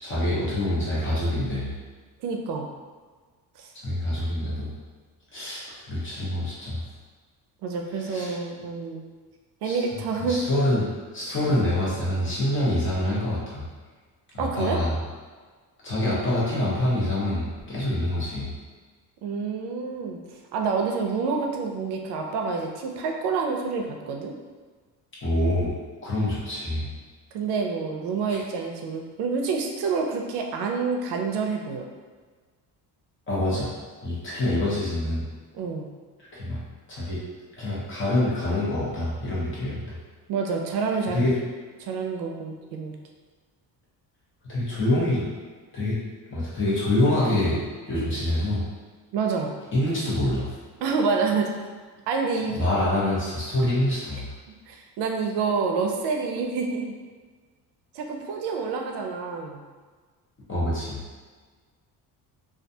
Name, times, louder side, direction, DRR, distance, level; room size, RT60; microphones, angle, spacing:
voice 1, 0.0-1.7 3.8-4.7 5.3-6.8 8.0-8.3 9.6-9.8 10.2-10.9 11.1-13.6 14.3-14.9 15.8-18.5 25.2-25.7 26.0-26.9 33.3-33.7 34.0-35.2 36.3-36.6 36.9-37.2 37.6-40.0 41.1-41.4 44.5-45.3 45.7-46.0 46.3-48.6 49.7-50.5 52.5-54.3 60.5-61.0, left 1 dB, 30° left, -7 dB, 0.8 m, -26 dB
voice 2, 2.2-2.7 3.6-3.7 7.6-9.0 9.6-10.4 11.4-11.5 14.4-14.8 19.2-20.2 20.5-24.3 27.3-31.9 35.5-35.9 40.3-41.2 41.8-42.9 49.1-49.5 50.8-51.7 52.1-52.7 54.7-56.9 57.9-59.6, right 4 dB, 85° right, 2 dB, 0.5 m, -28 dB
2.3 x 2.2 x 2.6 m, 1.5 s
cardioid pair, 135°, 39 cm